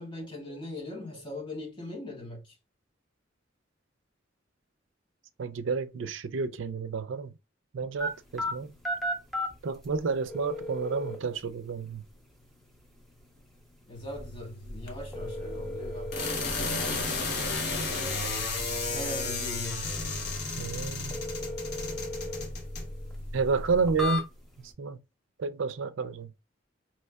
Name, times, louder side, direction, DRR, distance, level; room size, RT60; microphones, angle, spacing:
voice 1, 0.0-2.5 13.9-18.3 18.8-19.9, left 1 dB, 25° left, 1.4 m, -41 dB
voice 2, 5.4-7.3 7.7-8.7 9.6-12.0 20.6-21.2 23.3-24.3 24.8-25.0 25.4-26.3, right 4 dB, 80° right, 0.4 m, -30 dB
sound 1, 8.0-24.7, left 1 dB, ahead, 0.9 m, -39 dB
sound 2, 13.9-24.0, left 3 dB, 55° left, 0.9 m, -34 dB
4.5 x 3.0 x 2.2 m
head